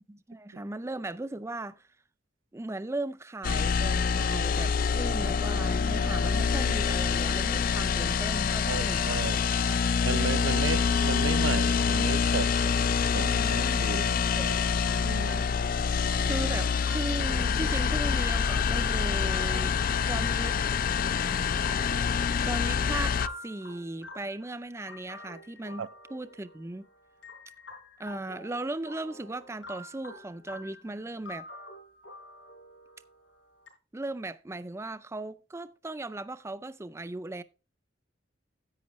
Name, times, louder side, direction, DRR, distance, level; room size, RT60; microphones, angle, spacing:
voice 1, 0.0-1.9 2.5-9.8 13.1-14.7 15.2-15.7 16.2-19.8 20.1-20.6 22.4-26.9 28.0-31.5 33.9-37.4, right 2 dB, 15° right, 0.4 m, -37 dB
sound 1, 3.4-23.3, left 6 dB, 45° left, 0.4 m, -26 dB
voice 2, 8.7-9.4 10.0-14.6 15.0-15.5 25.8-25.9, right 5 dB, 80° right, 0.5 m, -35 dB
sound 2, 14.5-33.7, left 1 dB, 80° left, 4.6 m, -47 dB
10.5 x 8.8 x 3.0 m
head